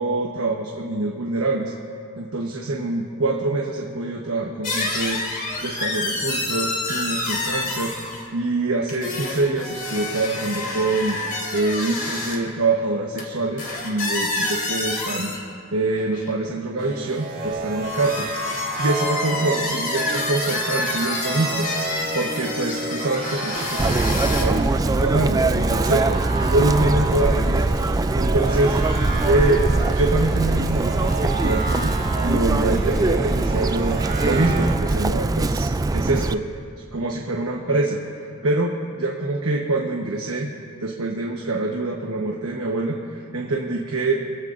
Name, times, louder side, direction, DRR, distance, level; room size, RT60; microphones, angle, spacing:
voice 1, 0.0-1.7 2.2-11.2 11.5-15.5 15.7-21.7 22.1-26.2 26.5-27.6 28.2-28.7 29.2-31.9 32.2-36.6 36.9-38.0 38.4-40.5 40.8-44.1, right 2 dB, 85° right, 0 dB, 1.1 m, -25 dB
sound 1, 4.6-8.3 8.8-12.4 13.2-13.3 13.6-15.4 15.9-16.3 17.4-24.4, left 2 dB, 45° left, 2.8 m, -28 dB
sound 2, 16.8-34.7, right 3 dB, 45° right, 2.2 m, -31 dB
Chirp tweet, 23.8-36.3, right 2 dB, 15° right, 0.3 m, -22 dB
26.0 x 15.5 x 2.6 m, 2.4 s
head